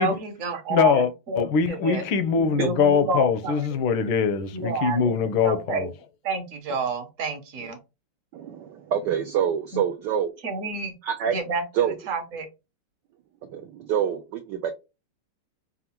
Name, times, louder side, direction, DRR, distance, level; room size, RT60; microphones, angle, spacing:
voice 1, 0.0-2.0 2.4-3.6 4.5-5.1 5.4-5.9 6.2-7.8 9.7-9.8 10.4-10.9 11.3-12.5, right 3 dB, 50° right, 1.1 m, -29 dB
voice 2, 0.7-1.1 1.4-5.9, left 6 dB, 75° left, 1.4 m, -22 dB
voice 3, 8.3-10.3 11.0-11.4 11.7-12.0 13.5-14.7, right 9 dB, 80° right, 1.0 m, -26 dB
5.7 x 2.3 x 2.8 m
omnidirectional pair, 2.4 m